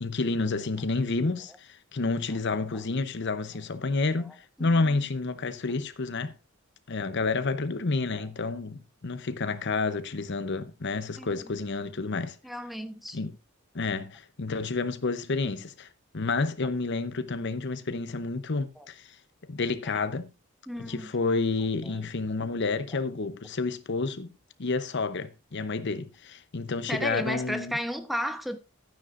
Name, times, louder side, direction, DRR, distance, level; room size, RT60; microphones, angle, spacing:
voice 1, 0.0-6.3 6.9-12.4 13.1-13.3 13.7-15.9 16.1-19.2 19.5-20.3 20.8-27.8, left 3 dB, 60° left, 0.8 m, -30 dB
voice 2, 11.2-11.5 12.4-13.2 18.8-18.9 20.7-21.1 21.8-22.0 26.9-28.6, equal, ahead, 0.9 m, -34 dB
13.0 x 9.4 x 2.5 m
head